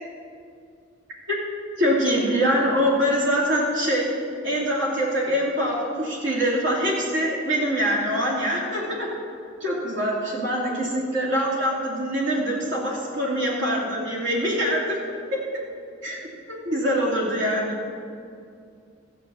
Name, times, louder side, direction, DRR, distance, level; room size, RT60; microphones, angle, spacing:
voice 1, 1.8-4.1 4.4-9.1 9.6-15.0 16.0-16.2 16.5-17.8, equal, 70° right, -3 dB, 2.7 m, -24 dB
13.5 x 8.6 x 6.8 m, 2.4 s
head